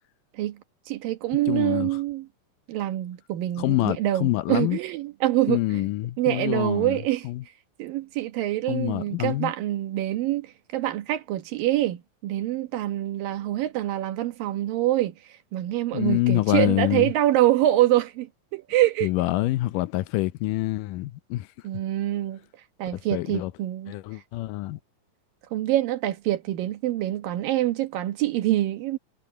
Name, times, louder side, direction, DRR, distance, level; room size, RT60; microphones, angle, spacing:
voice 1, 0.9-2.3 2.7-5.8 6.2-7.3 7.8-15.1 15.5-19.1 21.6-22.4 22.8-23.9 25.5-29.0, right 14 dB, 85° right, 3.0 m, -25 dB
voice 2, 1.5-1.9 3.6-4.8 5.5-7.4 8.7-9.5 15.9-17.1 19.0-21.5 22.9-23.5 23.9-24.8, left 17 dB, 80° left, 2.2 m, -26 dB
omnidirectional pair, 3.9 m